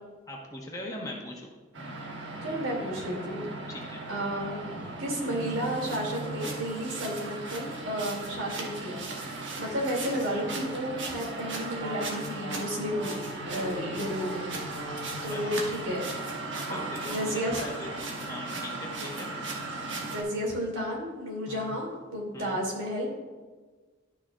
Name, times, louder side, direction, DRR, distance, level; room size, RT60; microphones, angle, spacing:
voice 1, 0.3-1.5 3.7-4.0 12.9-13.2 15.3-15.5 16.7-17.9 18.3-19.3 21.5-21.8 22.3-22.6, left 1 dB, 15° left, -1 dB, 1.2 m, -40 dB
sound 1, 1.7-20.2, right 2 dB, 70° right, 1.4 m, -37 dB
voice 2, 2.4-3.5 4.1-4.6 5.0-13.2 13.5-14.5 15.2-16.0 16.6-17.6 19.0-19.1 20.1-23.1, equal, 90° right, -2 dB, 2.6 m, -32 dB
Wind instrument woodwind instrument, 11.8-15.8, right 1 dB, 35° right, 2.1 m, -41 dB
12.0 x 6.1 x 2.4 m, 1.3 s
head